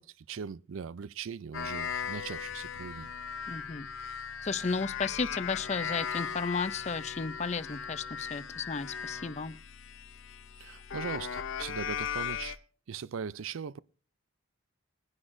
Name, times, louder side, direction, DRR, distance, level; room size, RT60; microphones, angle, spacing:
voice 1, 0.0-3.1 10.6-12.6 12.9-13.8, right 6 dB, 70° right, 0.4 m, -40 dB
sound 1, 1.5-12.6, left 7 dB, 70° left, 0.7 m, -38 dB
voice 2, 3.5-3.9 4.4-9.6, left 4 dB, 30° left, 0.5 m, -33 dB
21.5 x 9.7 x 2.6 m
head